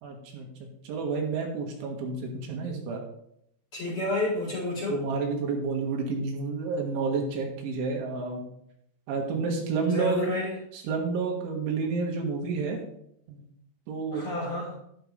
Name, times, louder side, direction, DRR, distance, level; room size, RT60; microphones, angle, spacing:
voice 1, 0.0-3.0 4.9-8.4 9.1-10.2 10.7-12.8 13.3-13.5 13.9-14.2, right 4 dB, 80° right, 1 dB, 4.2 m, -30 dB
voice 2, 3.7-5.1 9.8-10.5 14.1-14.8, left 2 dB, 20° left, -5 dB, 4.3 m, -30 dB
12.0 x 11.5 x 3.4 m, 0.74 s
omnidirectional pair, 5.5 m